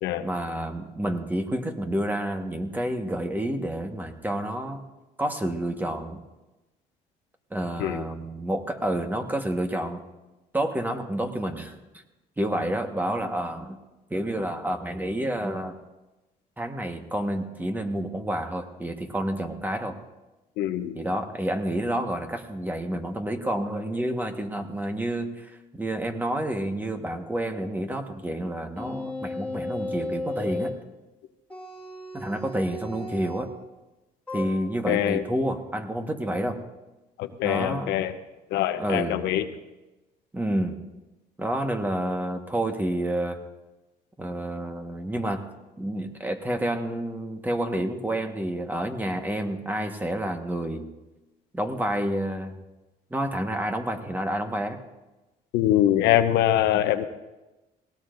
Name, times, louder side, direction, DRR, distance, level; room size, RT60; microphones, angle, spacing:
voice 1, 0.2-4.8 5.2-6.2 7.5-10.0 10.5-11.8 12.4-13.8 14.1-15.7 16.6-19.9 20.9-30.7 32.1-33.5 34.3-36.6 37.4-37.9 38.7-39.2 40.3-40.8 41.4-43.4 44.2-45.4 45.8-50.9 51.5-52.6 53.1-54.8, right 1 dB, 10° right, 5 dB, 1.4 m, -29 dB
voice 2, 20.6-21.0 34.9-35.2 37.2-38.1 38.5-39.4 55.5-57.0, left 12 dB, 90° left, 9 dB, 0.9 m, -23 dB
sound 1, 28.8-30.8 31.5-33.5 34.3-34.5, left 2 dB, 10° left, 2.6 m, -34 dB
19.5 x 17.5 x 2.6 m, 1.1 s
cardioid pair, 110°, 17 cm